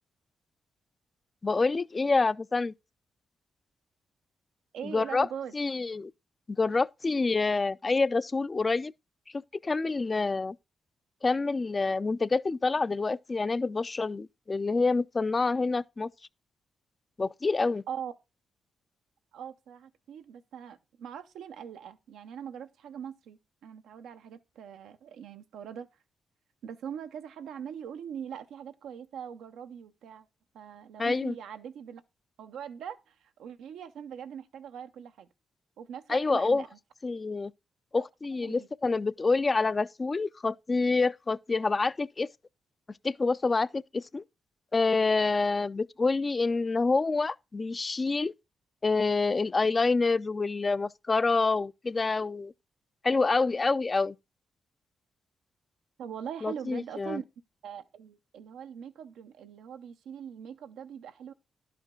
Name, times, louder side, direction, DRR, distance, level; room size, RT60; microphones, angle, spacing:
voice 1, 1.4-2.7 4.8-5.3 5.5-6.1 6.6-8.9 9.6-10.6 11.2-16.1 17.2-17.8 31.0-31.3 36.1-36.6 37.0-37.5 37.9-42.3 43.0-44.2 44.7-48.3 48.8-52.5 53.0-54.2 56.4-57.2, left 3 dB, 35° left, 0.3 m, -27 dB
voice 2, 4.7-5.5 17.9-18.2 19.3-25.9 26.6-30.3 30.5-32.0 32.4-35.3 35.8-36.8 38.0-38.1 38.4-38.7 56.0-57.2 57.6-61.3, right 8 dB, 90° right, 0.6 m, -42 dB
11.0 x 5.0 x 3.7 m
cardioid pair, 75°, 0 cm